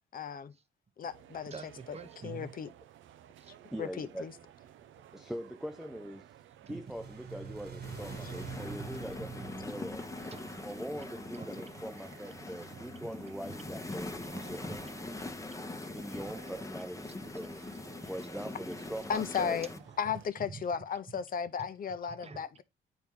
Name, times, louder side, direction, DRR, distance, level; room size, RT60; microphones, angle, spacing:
voice 1, 0.1-0.5 1.0-1.5 2.2-2.7 3.8-4.3 8.2-8.3 19.1-19.7 20.0-22.6, left 7 dB, 45° left, 0.6 m, -35 dB
sound 1, 1.0-20.3, right 11 dB, 75° right, 0.6 m, -55 dB
voice 2, 1.5-2.5 3.4-3.5 6.6-6.8 9.6-11.8 12.2-12.8 13.5-13.6 14.3-14.8 16.8-17.7 20.0-20.1 20.4-20.6 21.1-21.2 22.1-22.5, right 5 dB, 30° right, 0.8 m, -49 dB
voice 3, 3.7-4.3 5.1-6.4 6.7-10.1 10.6-15.1 15.9-17.6 18.0-19.7, equal, ahead, 0.5 m, -42 dB
sound 2, 6.6-11.8, right 5 dB, 55° right, 1.5 m, -45 dB
sound 3, 7.8-19.8, left 2 dB, 15° left, 0.9 m, -43 dB
7.9 x 4.5 x 3.6 m
cardioid pair, 90°, 20 cm